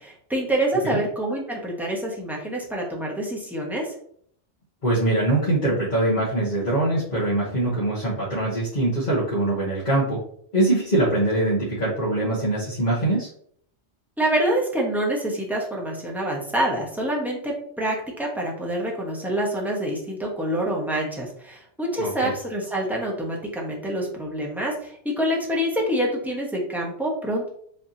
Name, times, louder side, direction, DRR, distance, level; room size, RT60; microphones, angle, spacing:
voice 1, 0.0-3.9 14.2-27.5, right 1 dB, ahead, -3 dB, 1.1 m, -26 dB
voice 2, 4.8-10.2 10.5-13.3 22.0-22.3, right 1 dB, 40° left, -8 dB, 1.3 m, -23 dB
5.4 x 3.4 x 2.8 m, 0.62 s
omnidirectional pair, 1.2 m